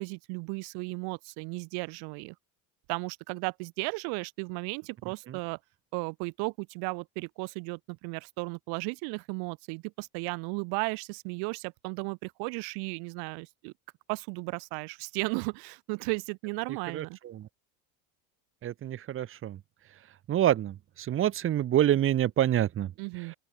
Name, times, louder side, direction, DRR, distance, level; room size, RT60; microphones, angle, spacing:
voice 1, 0.0-2.3 2.9-5.6 5.9-13.7 14.1-17.2 23.0-23.3, right 32 dB, 65° right, 1.6 m, -35 dB
voice 2, 18.6-19.6 20.3-22.9, right 12 dB, 30° right, 0.8 m, -26 dB
open air
supercardioid pair, 105°, 42 cm